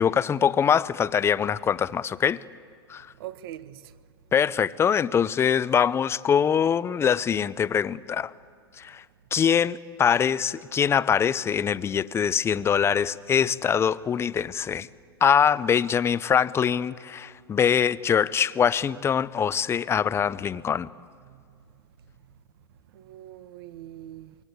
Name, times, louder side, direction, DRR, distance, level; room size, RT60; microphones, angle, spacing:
voice 1, 0.0-2.4 2.9-3.1 4.3-8.3 8.8-9.0 9.3-14.9 15.2-20.9, left 8 dB, 20° left, 0.6 m, -23 dB
voice 2, 3.2-3.9 21.2-21.6 22.9-24.4, right 12 dB, 65° right, 1.3 m, -42 dB
26.0 x 23.0 x 8.2 m
hypercardioid pair, 120°, 13 cm